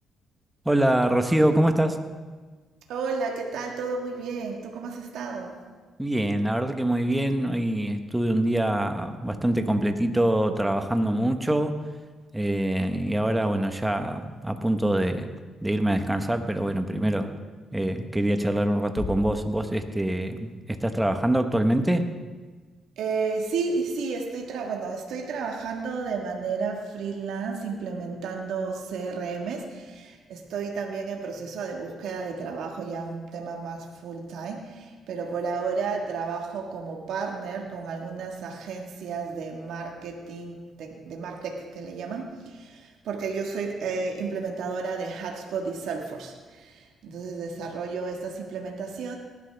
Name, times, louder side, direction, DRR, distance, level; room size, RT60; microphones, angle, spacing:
voice 1, 0.6-2.0 6.0-11.8 12.3-15.3 15.6-17.3 17.7-22.1, right 1 dB, 10° right, 7 dB, 1.1 m, -24 dB
voice 2, 2.9-5.6 23.0-49.2, right 4 dB, 80° right, 1 dB, 1.5 m, -32 dB
sound 1, 19.0-20.4, left 4 dB, 40° left, 1.1 m, -37 dB
18.5 x 12.0 x 3.4 m, 1.4 s
cardioid pair, 90°, 0 cm